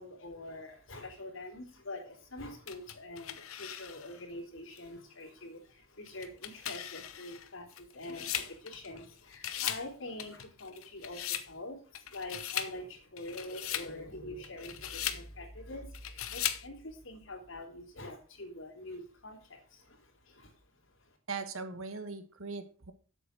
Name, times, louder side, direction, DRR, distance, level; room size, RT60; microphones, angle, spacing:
voice 1, 0.0-21.2, left 1 dB, 70° left, 1 dB, 3.6 m, -45 dB
sound 1, 2.7-4.2 4.8-4.9 6.1-9.1 9.3-9.9 10.2-11.5 11.9-12.7 13.2-13.9 14.4-15.2 15.9-16.7, left 11 dB, 90° left, 1.0 m, -38 dB
voice 2, 21.3-22.9, right 4 dB, 80° right, 9 dB, 1.6 m, -40 dB
8.2 x 7.2 x 6.6 m, 0.38 s
head